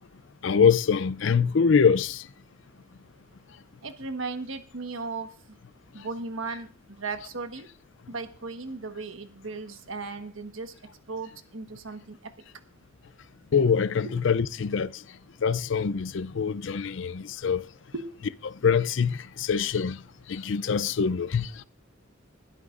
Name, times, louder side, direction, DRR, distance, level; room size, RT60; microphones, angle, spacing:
voice 1, 0.4-2.2 13.5-14.9 15.4-17.6 18.5-20.0 20.3-21.5, left 6 dB, 60° left, 0.5 m, -24 dB
voice 2, 3.8-5.3 5.9-7.7 8.1-10.7 11.1-12.3 14.0-14.1 17.9-18.1, right 3 dB, 75° right, 1.3 m, -36 dB
21.0 x 11.5 x 2.5 m
head